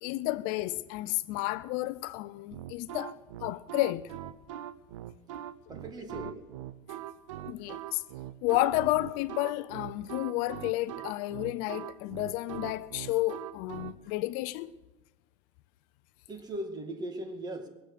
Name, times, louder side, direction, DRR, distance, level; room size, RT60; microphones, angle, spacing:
voice 1, 0.0-4.1 7.5-8.0 8.4-14.7, left 18 dB, 60° left, 0.5 m, -31 dB
sound 1, 2.5-13.9, right 12 dB, 85° right, 0.7 m, -41 dB
voice 2, 5.7-6.5 16.3-17.7, right 1 dB, 25° right, 1.9 m, -38 dB
21.5 x 7.8 x 6.6 m
supercardioid pair, 115°, 16 cm